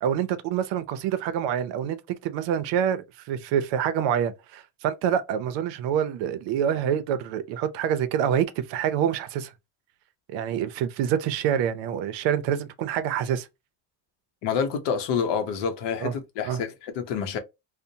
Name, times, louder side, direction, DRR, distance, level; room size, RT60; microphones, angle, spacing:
voice 1, 0.0-9.5 10.3-13.5 16.0-16.1 16.4-16.6, right 9 dB, 80° right, 0.6 m, -26 dB
voice 2, 14.4-17.4, left 6 dB, 70° left, 0.7 m, -28 dB
2.7 x 2.1 x 2.6 m
cardioid pair, 155°, 44 cm